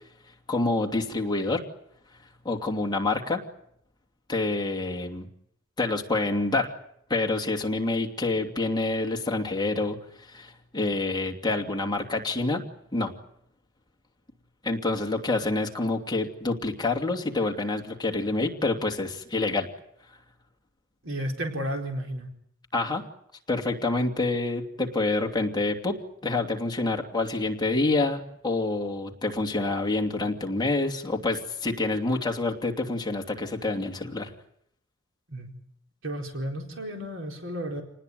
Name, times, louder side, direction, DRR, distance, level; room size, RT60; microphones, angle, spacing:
voice 1, 0.5-1.6 2.4-3.4 4.3-5.3 5.8-6.7 7.1-12.6 12.9-13.1 14.6-19.7 22.7-23.0 23.5-26.0 26.2-34.3, left 2 dB, 20° left, 2 dB, 2.8 m, -27 dB
voice 2, 21.0-22.3 35.3-35.5 36.0-37.8, equal, 65° right, 2 dB, 4.4 m, -32 dB
28.0 x 19.5 x 9.3 m, 0.74 s
head